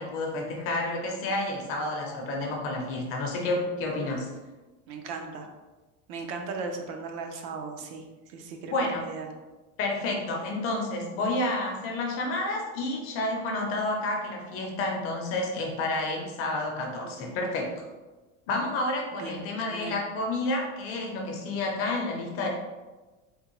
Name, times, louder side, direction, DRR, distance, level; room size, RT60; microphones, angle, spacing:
voice 1, 0.0-4.3 8.7-9.1 9.8-17.9 18.5-22.5, left 2 dB, 40° left, 0 dB, 0.6 m, -30 dB
voice 2, 4.9-5.5 6.1-9.3 19.2-20.0, right 4 dB, 70° right, 4 dB, 0.6 m, -37 dB
3.6 x 2.8 x 3.0 m, 1.2 s
cardioid pair, 175°, 36 cm